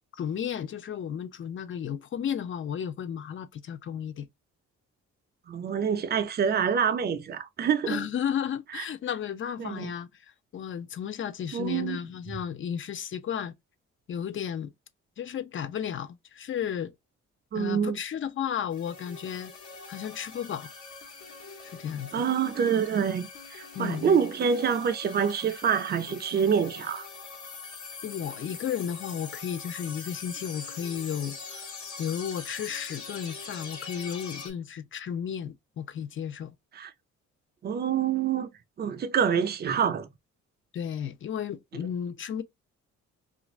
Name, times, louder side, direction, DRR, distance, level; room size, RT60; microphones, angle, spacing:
voice 1, 0.2-4.3 7.9-10.1 10.5-13.5 14.1-14.7 15.2-16.9 17.5-19.5 19.9-20.7 21.6-22.2 23.7-24.1 28.0-31.7 32.0-36.5 40.7-42.4, left 8 dB, 40° left, 0.5 m, -33 dB
voice 2, 5.5-8.1 8.7-8.8 9.6-9.9 11.5-12.0 12.3-12.4 17.5-18.0 22.1-27.1 36.7-36.9 37.6-38.5 38.8-40.1, right 7 dB, 35° right, 0.5 m, -26 dB
sound 1, 18.7-34.5, left 5 dB, 70° left, 1.2 m, -43 dB
2.5 x 2.4 x 3.1 m
cardioid pair, 90°, 30 cm